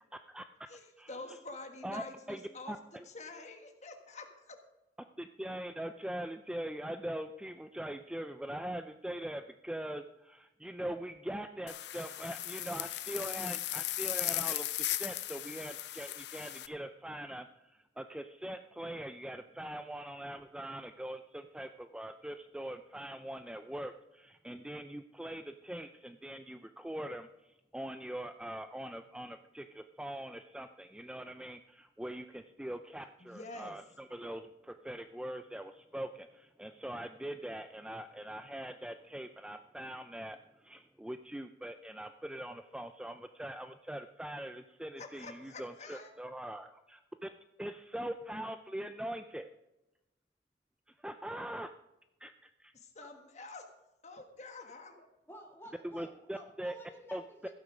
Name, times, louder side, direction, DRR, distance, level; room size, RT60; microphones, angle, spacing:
voice 1, 0.1-0.7 1.0-1.4 1.8-2.4 2.7-2.8 5.0-47.3 47.6-49.5 50.9-51.7 52.2-52.7 55.8-56.8 57.1-57.2, right 1 dB, 5° right, 8 dB, 0.4 m, -42 dB
voice 2, 0.7-4.6 33.2-33.8 45.0-46.1 52.7-53.6 54.0-55.1, left 3 dB, 40° left, 5 dB, 1.4 m, -48 dB
sound 1, 11.7-16.7, left 15 dB, 75° left, 0.6 m, -37 dB
voice 3, 55.3-57.5, equal, 15° left, 2 dB, 1.7 m, -52 dB
15.5 x 8.5 x 5.1 m, 0.95 s
head